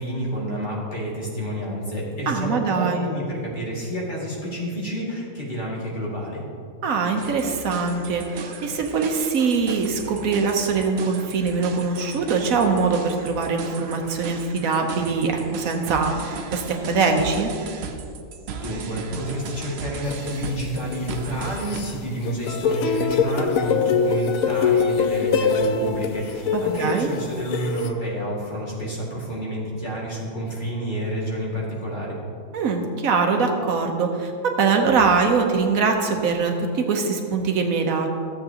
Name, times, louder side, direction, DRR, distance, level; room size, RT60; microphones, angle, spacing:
voice 1, 0.0-6.4 18.6-32.2, equal, 35° left, -6 dB, 2.2 m, -29 dB
voice 2, 2.3-3.1 6.8-17.5 26.5-27.1 32.5-38.1, right 4 dB, 75° right, 3 dB, 1.3 m, -23 dB
sound 1, 7.2-21.8, right 5 dB, 60° right, 0.8 m, -37 dB
sound 2, 20.1-21.9 22.2-27.9, left 5 dB, 80° left, 1.0 m, -23 dB
14.0 x 7.9 x 2.8 m, 2.4 s
omnidirectional pair, 1.5 m